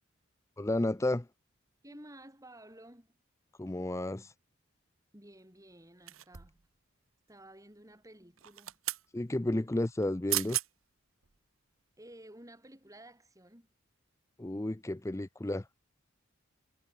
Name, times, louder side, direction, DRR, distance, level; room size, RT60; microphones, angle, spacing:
voice 1, 0.6-1.3 3.6-4.3 9.1-10.6 14.4-15.7, left 1 dB, 15° left, 0.5 m, -32 dB
voice 2, 1.8-3.1 5.1-6.7 7.3-8.8 12.0-13.7, right 1 dB, 15° right, 7.0 m, -53 dB
sound 1, 6.1-6.7 8.4-9.1 10.0-10.1 10.3-10.7 11.2-11.4, right 16 dB, 85° right, 1.1 m, -35 dB
head